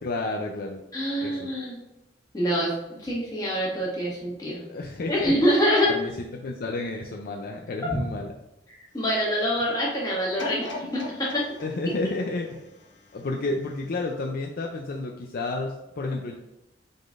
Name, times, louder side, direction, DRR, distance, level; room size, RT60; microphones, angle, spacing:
voice 1, 0.0-0.8 1.2-1.5 4.7-5.3 5.9-8.3 11.6-12.6 13.1-16.4, left 2 dB, 55° left, 1 dB, 0.4 m, -31 dB
voice 2, 0.9-1.8 2.3-2.7 3.0-4.6 5.1-5.9 8.9-11.4, equal, 20° left, -6 dB, 1.6 m, -25 dB
sound 1, 10.4-13.5 14.0-14.1, left 2 dB, 85° left, 0.9 m, -38 dB
5.2 x 3.9 x 2.5 m, 0.93 s
head